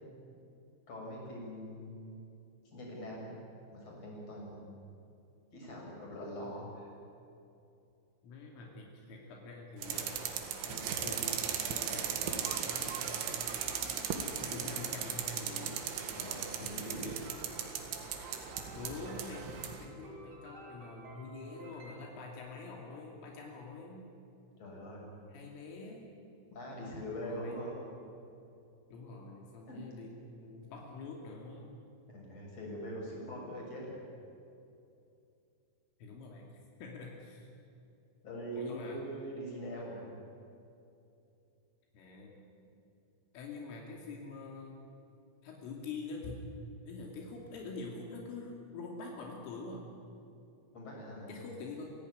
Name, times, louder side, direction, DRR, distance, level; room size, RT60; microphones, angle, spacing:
voice 1, 0.9-2.1 2.7-3.3 3.7-4.6 5.5-6.9 16.2-17.3 24.6-25.0 26.5-27.9 29.7-29.9 32.1-34.0 38.2-40.2 50.7-51.3, equal, 30° left, -2 dB, 7.6 m, -42 dB
voice 2, 8.2-13.3 14.3-15.8 16.6-17.5 18.7-19.5 19.8-24.0 25.3-26.1 27.2-27.6 28.9-31.7 36.0-36.5 36.8-37.5 38.5-39.0 41.9-42.4 43.3-44.8 45.4-46.4 46.9-49.8 51.3-51.9, left 3 dB, 80° left, -1 dB, 5.2 m, -46 dB
sound 1, 9.8-19.8, right 8 dB, 70° right, 4.1 m, -37 dB
sound 2, 18.2-22.9, right 2 dB, 50° right, 6.4 m, -54 dB
28.0 x 16.5 x 9.6 m, 2.7 s
omnidirectional pair, 5.7 m